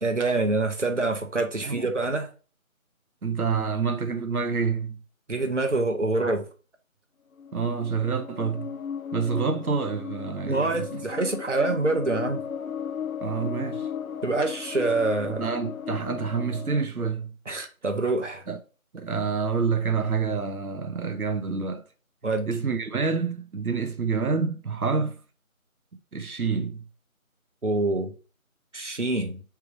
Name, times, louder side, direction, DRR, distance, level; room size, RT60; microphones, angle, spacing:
voice 1, 0.0-2.3 5.3-6.4 10.5-12.4 14.2-15.5 17.5-18.4 22.2-22.5 27.6-28.1 28.7-29.4, right 2 dB, 55° right, 0.8 m, -26 dB
voice 2, 3.2-5.0 7.5-8.7 9.1-10.8 13.2-13.9 15.3-17.3 18.5-18.6 18.9-21.8 22.5-25.2 26.1-26.8, right 5 dB, 90° right, 0.7 m, -27 dB
sound 1, 7.4-16.9, left 7 dB, 75° left, 0.5 m, -36 dB
3.4 x 3.2 x 4.7 m
figure-of-eight pair, 180°, 42 cm